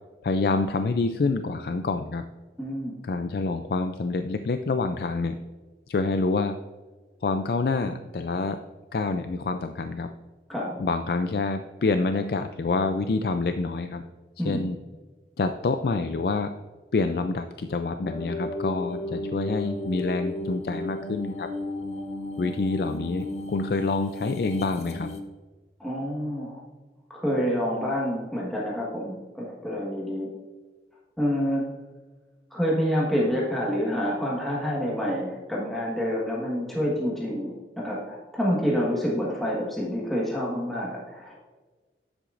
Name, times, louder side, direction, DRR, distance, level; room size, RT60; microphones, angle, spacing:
voice 1, 0.2-2.2 3.0-5.4 5.9-6.6 7.2-8.6 8.9-10.1 10.8-14.0 14.4-14.8 15.4-16.5 16.9-21.5 22.4-25.1, left 3 dB, 60° left, 8 dB, 0.4 m, -27 dB
voice 2, 2.6-2.9 10.5-10.8 14.4-14.6 25.8-26.6 27.1-30.3 31.2-31.6 32.5-41.3, equal, ahead, -5 dB, 1.4 m, -27 dB
sound 1, 18.1-25.2, left 1 dB, 40° left, 0.8 m, -34 dB
9.8 x 7.7 x 2.5 m, 1.3 s
head